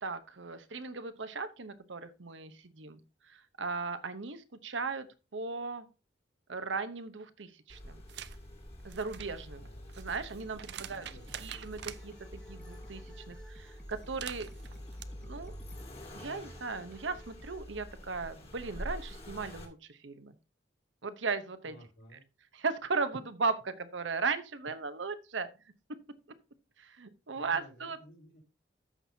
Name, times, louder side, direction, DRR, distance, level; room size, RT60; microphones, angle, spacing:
voice 1, 0.0-3.0 3.3-5.1 5.3-5.9 6.5-8.0 8.8-9.7 10.0-11.1 11.4-14.5 15.2-15.5 16.1-20.3 21.0-21.7 22.5-25.5 26.8-28.0, right 4 dB, 85° right, 11 dB, 0.9 m, -37 dB
Accelerating revving vroom, 7.7-19.7, equal, 35° left, 2.2 m, -47 dB
sound 1, 8.1-8.4 8.8-12.0 13.9-15.0, right 10 dB, 65° right, 0.5 m, -46 dB
voice 2, 9.6-9.9 10.7-11.5 21.6-22.2 27.3-28.4, equal, 65° left, -2 dB, 4.6 m, -56 dB
sound 2, 10.0-17.6, equal, 5° left, 1.1 m, -55 dB
14.0 x 6.0 x 2.8 m, 0.30 s
head